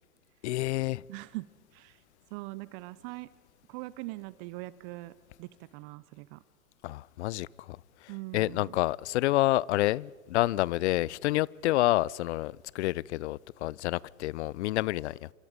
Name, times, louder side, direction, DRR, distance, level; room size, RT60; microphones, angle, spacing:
voice 1, 0.4-1.0 6.8-15.3, left 17 dB, 55° left, 0.6 m, -29 dB
voice 2, 1.1-1.5 1.7-2.0 2.3-3.3 3.7-6.4 8.1-8.8, right 21 dB, 40° right, 0.8 m, -42 dB
29.0 x 25.5 x 5.2 m
hypercardioid pair, 105°, 41 cm